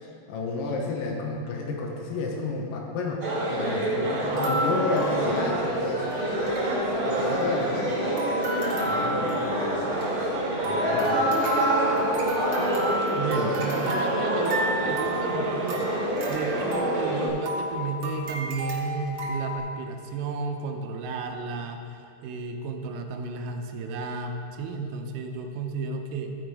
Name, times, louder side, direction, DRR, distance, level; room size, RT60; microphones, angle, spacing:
voice 1, 0.0-3.2 3.5-6.1 7.0-7.9 8.9-9.6 10.6-11.3, left 3 dB, 85° left, -1 dB, 1.9 m, -31 dB
sound 1, 3.2-17.3, right 1 dB, 50° right, 1.7 m, -27 dB
sound 2, 4.2-5.8 6.1-6.2 6.4-6.6 7.1-7.9 8.2-19.6, equal, 65° right, 1.8 m, -32 dB
voice 2, 13.1-26.4, right 4 dB, 90° right, 3 dB, 3.3 m, -33 dB
15.0 x 5.0 x 4.7 m, 2.6 s
omnidirectional pair, 5.5 m